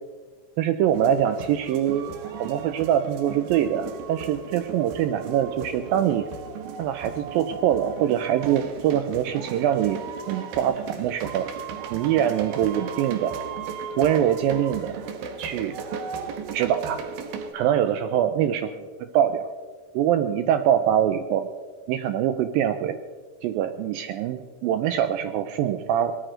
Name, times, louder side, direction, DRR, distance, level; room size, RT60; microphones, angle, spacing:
voice 1, 0.6-2.1 2.4-6.3 6.8-10.0 10.3-11.5 11.9-13.3 14.0-15.0 15.4-15.7 16.5-17.0 17.5-18.6 19.1-19.5 19.9-21.5 21.9-23.0 23.4-26.1, right 10 dB, 90° right, 9 dB, 2.0 m, -23 dB
sound 1, 0.9-17.5, right 6 dB, 70° right, 2.7 m, -36 dB
19.0 x 13.0 x 3.8 m, 1.5 s
omnidirectional pair, 4.7 m